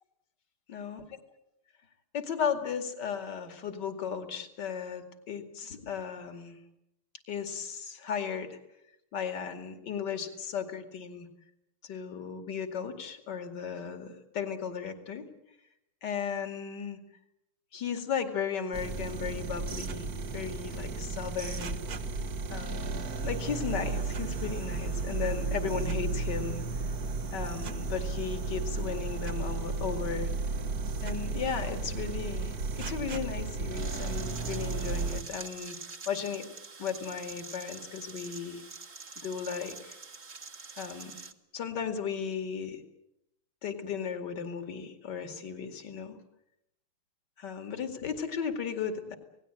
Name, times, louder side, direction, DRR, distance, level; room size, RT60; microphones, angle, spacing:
voice 1, 0.7-1.2 2.1-6.6 7.3-8.6 9.1-11.3 11.8-15.2 16.0-17.0 17.7-20.1 20.3-21.8 22.5-26.6 27.3-30.3 31.0-35.8 36.1-36.5 36.8-38.6 39.2-40.0 40.8-41.2 41.5-42.8 43.6-46.2 47.4-49.2, left 7 dB, 55° left, 6 dB, 3.0 m, -35 dB
sound 1, 18.7-35.2, right 4 dB, 50° right, 1.6 m, -34 dB
sound 2, 33.7-41.3, right 4 dB, 35° right, 1.5 m, -45 dB
28.0 x 18.5 x 9.0 m, 0.83 s
omnidirectional pair, 2.3 m